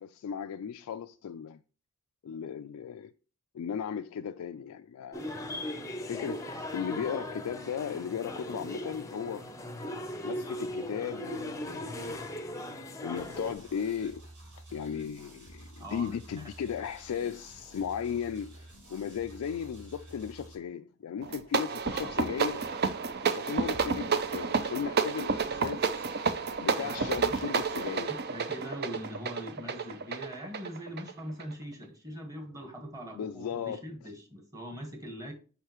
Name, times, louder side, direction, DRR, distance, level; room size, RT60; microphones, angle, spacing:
voice 1, 0.0-1.6 2.2-3.1 3.5-5.3 6.1-6.5 6.7-9.4 10.2-12.2 13.0-14.3 14.7-22.7 23.2-26.1 26.6-28.1 33.1-33.8, left 7 dB, 80° left, 0.3 m, -36 dB
sound 1, 5.1-13.5, left 1 dB, 15° left, 0.6 m, -38 dB
sound 2, 13.2-20.5, right 1 dB, 85° right, 3.6 m, -51 dB
voice 2, 15.8-16.2 21.9-22.1 26.8-27.4 28.1-35.3, equal, 15° right, 1.2 m, -42 dB
sound 3, 21.2-31.5, right 5 dB, 45° right, 0.4 m, -30 dB
6.5 x 5.5 x 3.0 m
head